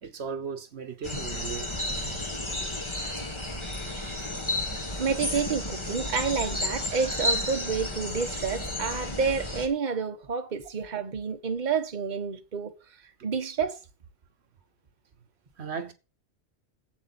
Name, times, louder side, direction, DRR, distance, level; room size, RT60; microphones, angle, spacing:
voice 1, 0.0-1.7 4.2-4.3 15.6-15.9, right 6 dB, 70° right, 1.2 m, -36 dB
sound 1, 1.0-9.7, left 1 dB, 25° left, 1.5 m, -32 dB
voice 2, 5.0-12.7 13.2-13.8, right 5 dB, 45° right, 1.1 m, -29 dB
11.5 x 8.0 x 4.1 m
omnidirectional pair, 1.2 m